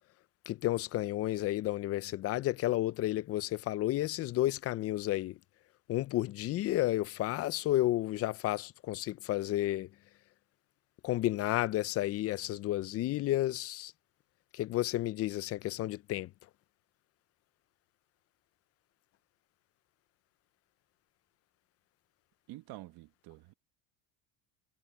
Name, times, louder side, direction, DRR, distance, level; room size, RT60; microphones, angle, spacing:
voice 1, 0.5-5.4 5.9-9.9 11.0-13.9 14.5-16.3, left 15 dB, 35° left, 0.5 m, -31 dB
voice 2, 22.5-23.5, right 17 dB, 60° right, 1.5 m, -48 dB
cardioid pair, 135°, 42 cm